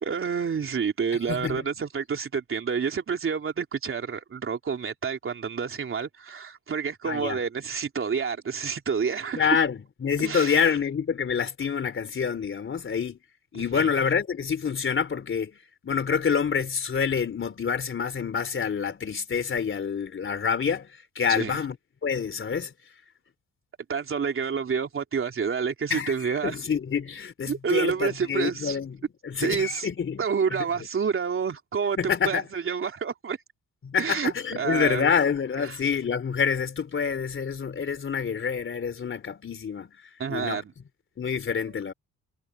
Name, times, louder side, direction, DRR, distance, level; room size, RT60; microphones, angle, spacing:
voice 1, 0.0-9.7 10.2-10.6 13.7-13.9 21.3-21.6 23.9-26.6 27.5-28.8 29.4-29.9 30.2-33.4 34.0-35.1 35.7-35.8 40.2-40.7, right 6 dB, 45° right, 3.5 m, -28 dB
voice 2, 1.3-1.6 7.0-7.4 9.3-13.2 13.5-15.5 15.8-20.9 21.2-21.8 22.0-22.7 25.9-29.0 29.2-30.2 32.0-32.4 33.8-39.9 40.3-40.6 41.2-41.9, left 6 dB, 40° left, 3.6 m, -27 dB
cardioid pair, 90°, 30 cm